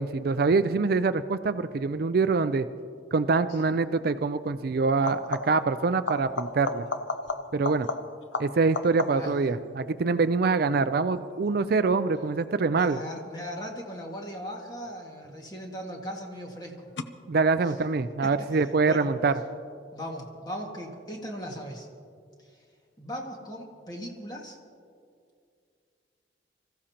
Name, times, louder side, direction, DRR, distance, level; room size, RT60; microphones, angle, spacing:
voice 1, 0.0-2.7 3.1-6.8 7.5-7.9 8.4-13.0 17.3-19.3, right 4 dB, 55° right, 11 dB, 0.4 m, -25 dB
sound 1, 3.5-3.8 4.9-5.7 6.1-9.4 14.9-15.5 17.0-17.1, left 3 dB, 80° left, 0.7 m, -34 dB
voice 2, 12.7-16.9 17.6-17.7 18.2-19.1 19.9-21.9 22.4-22.6 23.0-24.6, equal, 20° left, 0 dB, 1.9 m, -38 dB
25.5 x 15.0 x 2.9 m, 2.3 s
head